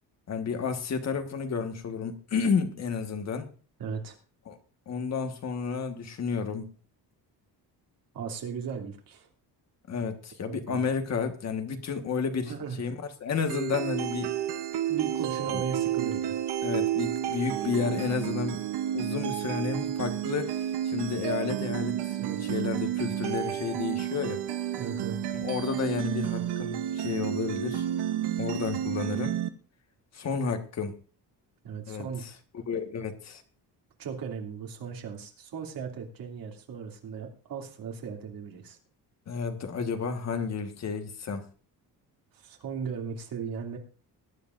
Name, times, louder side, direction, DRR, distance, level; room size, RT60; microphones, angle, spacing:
voice 1, 0.3-3.5 4.5-4.6 4.9-6.6 9.9-14.3 15.5-15.6 16.6-18.6 18.9-24.4 25.3-27.8 28.4-29.3 30.1-31.0 31.9-32.1 32.5-33.4 39.3-41.4, left 5 dB, 40° left, 6 dB, 1.6 m, -31 dB
voice 2, 3.8-4.2 8.1-9.3 10.5-10.8 12.5-12.8 14.9-16.4 22.2-22.5 24.8-25.2 31.6-32.3 34.0-38.8 42.3-43.8, right 6 dB, 60° right, 1 dB, 2.8 m, -37 dB
sound 1, 13.5-29.5, right 11 dB, 80° right, 1.0 m, -31 dB
21.0 x 10.0 x 2.6 m, 0.38 s
cardioid pair, 175°, 39 cm